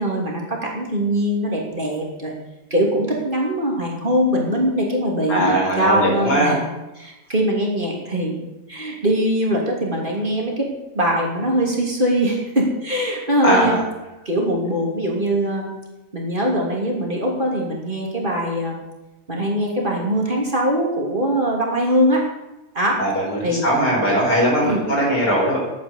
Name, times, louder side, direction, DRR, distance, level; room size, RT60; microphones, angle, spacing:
voice 1, 0.0-2.3 2.7-6.6 7.0-8.4 8.7-13.8 14.2-15.7 16.1-18.8 19.3-22.2 22.7-23.0 23.4-23.6 24.6-24.8, equal, 30° right, -2 dB, 3.1 m, -22 dB
voice 2, 5.3-6.5 13.4-13.8 23.0-25.6, equal, 80° left, -2 dB, 5.4 m, -19 dB
11.5 x 9.3 x 8.4 m, 1.0 s
omnidirectional pair, 1.7 m